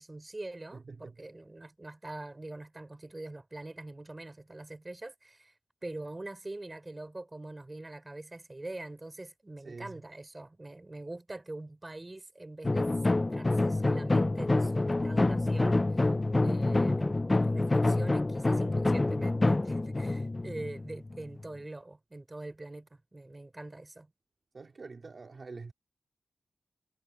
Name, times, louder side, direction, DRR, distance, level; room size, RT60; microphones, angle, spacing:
voice 1, 0.0-5.5 5.8-15.8 16.4-17.0 17.4-24.1, right 2 dB, 20° right, 4.3 m, -43 dB
voice 2, 9.6-10.0 24.5-25.7, right 4 dB, 40° right, 2.6 m, -45 dB
sound 1, 12.6-21.4, left 2 dB, 20° left, 0.4 m, -27 dB
wide cardioid pair, 180°, 0 cm